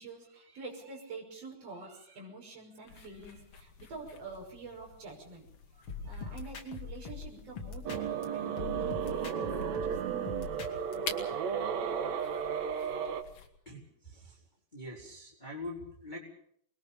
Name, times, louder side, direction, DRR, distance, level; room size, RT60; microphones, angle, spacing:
voice 1, 0.0-5.4 5.7-9.2 9.7-10.1, right 3 dB, 40° right, -2 dB, 7.0 m, -47 dB
sound 1, 2.9-13.5, left 6 dB, 60° left, 3.7 m, -49 dB
sound 2, 5.9-8.2 8.6-10.9, left 5 dB, 40° left, 3.2 m, -42 dB
sound 3, 7.8-13.2, right 7 dB, 55° right, 2.2 m, -34 dB
voice 2, 13.6-14.5 14.7-16.2, left 1 dB, 10° left, -3 dB, 4.3 m, -44 dB
27.0 x 21.5 x 5.5 m, 0.68 s
omnidirectional pair, 4.4 m